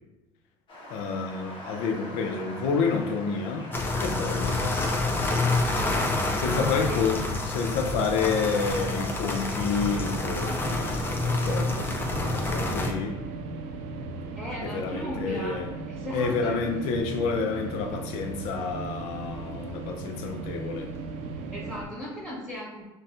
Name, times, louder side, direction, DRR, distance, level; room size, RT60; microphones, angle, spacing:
sound 1, 0.7-9.9, left 1 dB, 45° left, 1.2 m, -44 dB
voice 1, 0.9-3.7 4.0-5.4 6.4-13.2 14.6-15.7 16.1-20.9, left 5 dB, 75° left, 4 dB, 0.5 m, -29 dB
sound 2, 3.7-12.9, left 2 dB, 20° left, 0.5 m, -28 dB
voice 2, 6.5-7.1 14.3-15.6 15.9-16.6 21.5-22.8, equal, 5° right, -7 dB, 1.2 m, -37 dB
sound 3, 9.7-21.8, right 3 dB, 70° right, 0.5 m, -37 dB
4.0 x 2.3 x 2.4 m, 1.1 s
supercardioid pair, 85°, 11 cm